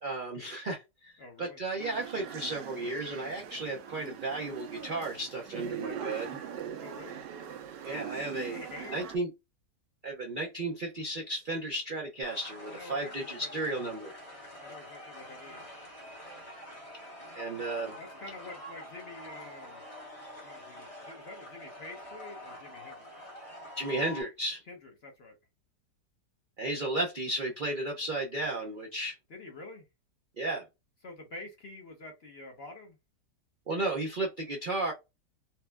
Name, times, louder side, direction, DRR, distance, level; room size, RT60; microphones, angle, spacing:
voice 1, 0.0-6.4 7.8-8.6 8.9-9.3 10.0-14.1 17.3-17.9 23.8-24.6 26.6-29.2 30.4-30.6 33.7-34.9, right 2 dB, 70° right, 0.4 m, -34 dB
voice 2, 1.2-1.6 6.8-7.2 8.3-9.0 12.7-13.7 14.6-15.7 18.0-19.8 20.4-23.1 24.7-25.4 29.3-29.9 31.0-33.0, left 2 dB, 50° left, 0.8 m, -47 dB
sound 1, 1.8-9.2, right 8 dB, 90° right, 1.3 m, -42 dB
sound 2, 12.2-24.2, equal, 25° left, 1.0 m, -46 dB
4.3 x 2.1 x 2.2 m
omnidirectional pair, 1.9 m